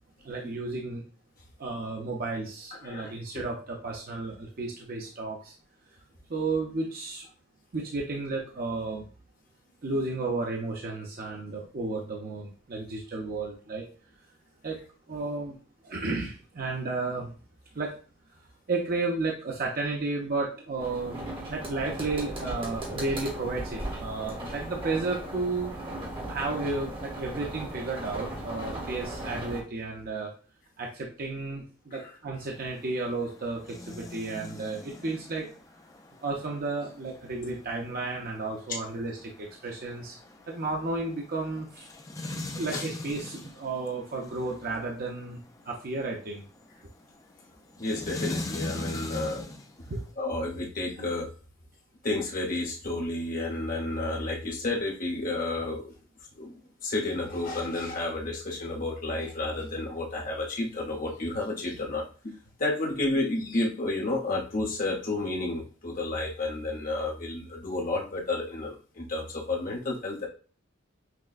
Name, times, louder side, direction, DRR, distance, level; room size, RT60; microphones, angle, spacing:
voice 1, 0.2-1.0 1.6-5.5 6.3-7.3 7.7-9.0 9.8-13.8 14.6-14.8 15.1-15.6 15.8-17.3 17.7-17.9 18.7-25.7 26.3-30.3 30.8-35.5 36.2-40.2 40.5-41.9 42.5-45.4 45.6-46.4 49.9-50.0, right 3 dB, 45° right, -1 dB, 0.6 m, -33 dB
voice 2, 2.8-3.4 31.9-32.0 42.7-42.8 47.8-49.5 50.2-51.3 52.0-55.9 56.3-56.5 56.8-70.3, left 2 dB, 40° left, -1 dB, 0.9 m, -31 dB
sound 1, 20.8-29.6, right 1 dB, 25° right, 1.1 m, -37 dB
sound 2, 32.4-50.1, left 2 dB, 15° left, 0.4 m, -42 dB
5.9 x 2.2 x 2.4 m, 0.37 s
head